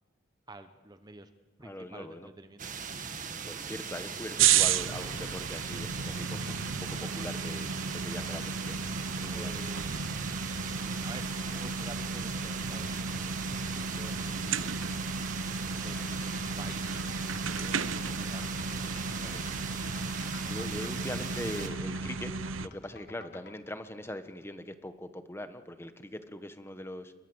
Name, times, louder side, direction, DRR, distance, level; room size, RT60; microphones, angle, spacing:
voice 1, 0.5-1.3 1.6-3.0 9.3-10.1 10.7-14.9 15.7-19.9, right 2 dB, 20° right, 9 dB, 0.9 m, -50 dB
voice 2, 1.6-2.3 3.4-6.5 6.8-8.8 9.2-9.7 20.5-27.1, left 1 dB, 10° left, 9 dB, 1.3 m, -41 dB
sound 1, 2.6-21.7, right 5 dB, 40° right, 1.9 m, -39 dB
sound 2, 4.4-22.7, right 6 dB, 75° right, 0.8 m, -33 dB
sound 3, 15.7-23.6, left 5 dB, 55° left, 1.5 m, -51 dB
29.0 x 22.0 x 8.0 m, 1.4 s
head